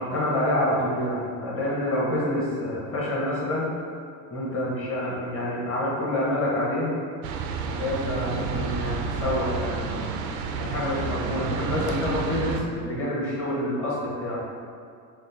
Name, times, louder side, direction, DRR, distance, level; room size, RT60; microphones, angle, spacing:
voice 1, 0.0-3.7 4.3-6.9 7.7-10.1 10.6-14.4, left 1 dB, 25° left, -6 dB, 1.3 m, -27 dB
sound 1, 7.2-12.6, right 6 dB, 65° right, 0.5 m, -30 dB
4.1 x 2.1 x 3.5 m, 2.3 s
hypercardioid pair, 80°, 49 cm